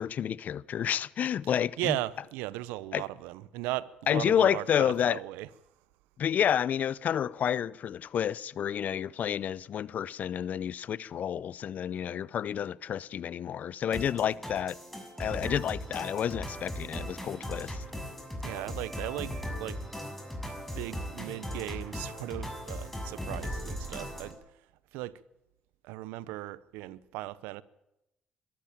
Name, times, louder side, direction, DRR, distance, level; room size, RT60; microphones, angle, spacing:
voice 1, 0.0-2.0 2.9-3.0 4.1-5.2 6.2-14.8 15.2-17.8, left 9 dB, 55° left, 0.7 m, -30 dB
voice 2, 1.5-5.5 18.4-19.8 20.8-24.4 24.9-25.2 25.8-27.6, right 17 dB, 85° right, 0.8 m, -37 dB
sound 1, 13.9-24.3, equal, 5° left, 6.8 m, -38 dB
22.5 x 13.5 x 8.9 m
supercardioid pair, 70°, 3 cm